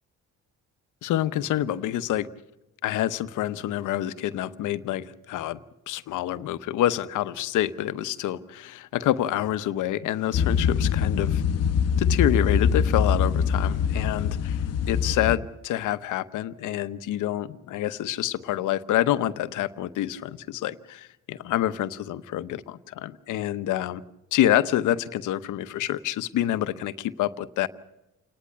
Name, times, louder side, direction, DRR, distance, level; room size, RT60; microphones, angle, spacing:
voice 1, 1.0-2.3 2.8-5.6 5.9-11.4 12.0-24.0 24.3-27.7, left 12 dB, 85° left, 13 dB, 0.9 m, -27 dB
sound 1, 10.3-15.4, left 6 dB, 55° left, 0.9 m, -23 dB
28.0 x 10.5 x 9.9 m, 0.96 s
cardioid pair, 90°, 30 cm